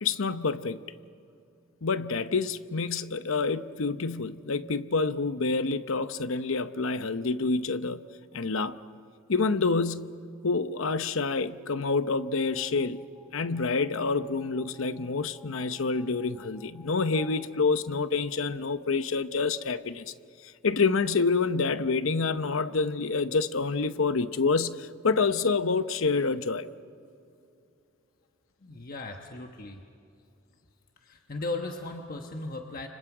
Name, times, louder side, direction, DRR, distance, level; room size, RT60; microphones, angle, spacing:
voice 1, 0.0-0.8 1.8-8.0 8.3-8.8 9.3-10.2 10.4-13.0 13.3-20.1 20.6-26.7, left 4 dB, 70° left, 0.8 m, -27 dB
sound 1, 12.0-18.5, left 2 dB, 10° left, 2.5 m, -54 dB
voice 2, 28.6-29.8 31.0-32.9, left 2 dB, 45° left, 1.2 m, -37 dB
30.0 x 25.5 x 4.9 m
head